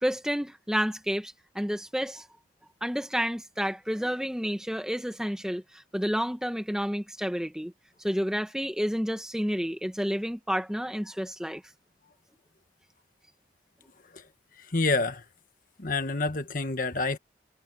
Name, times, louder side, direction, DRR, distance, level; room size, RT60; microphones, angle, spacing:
voice 1, 0.0-2.2 2.8-7.7 8.0-11.6, equal, 5° right, 1.4 m, -30 dB
voice 2, 14.7-15.2 15.8-17.2, left 3 dB, 45° left, 1.5 m, -27 dB
head